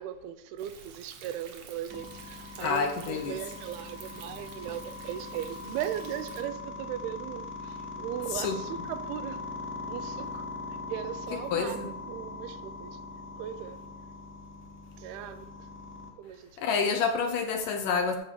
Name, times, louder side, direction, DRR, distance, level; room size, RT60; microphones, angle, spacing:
voice 1, 0.0-9.4 9.9-13.0 13.4-13.8 15.0-15.5 16.2-16.6, right 11 dB, 85° right, 2.7 m, -38 dB
Thunder, 0.6-6.4, right 6 dB, 60° right, 1.9 m, -50 dB
sound 1, 1.9-16.1, left 3 dB, 10° right, 0.6 m, -41 dB
voice 2, 2.6-3.4 8.3-8.9 11.3-11.9 16.6-18.2, left 5 dB, 75° left, 2.1 m, -29 dB
13.5 x 4.7 x 6.8 m
omnidirectional pair, 4.5 m